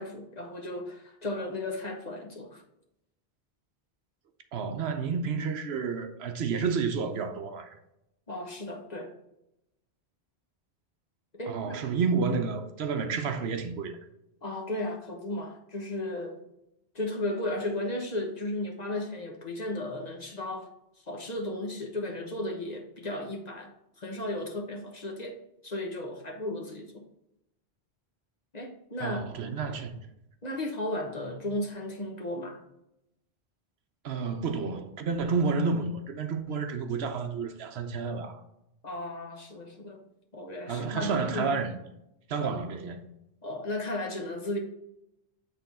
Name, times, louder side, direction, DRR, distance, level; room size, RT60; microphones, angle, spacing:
voice 1, 0.0-2.6 8.3-9.1 11.3-11.8 14.4-16.4 16.9-20.7 21.1-23.7 24.0-25.3 25.6-26.9 28.5-29.2 30.4-32.6 38.8-40.0 40.3-41.6 42.4-42.5 43.4-44.6, left 1 dB, 40° left, 1.1 m, -35 dB
voice 2, 4.5-7.8 11.5-14.0 29.0-30.0 34.0-38.4 40.7-41.8 42.3-43.1, right 5 dB, 70° right, 0.9 m, -30 dB
8.2 x 3.7 x 4.1 m
omnidirectional pair, 1.1 m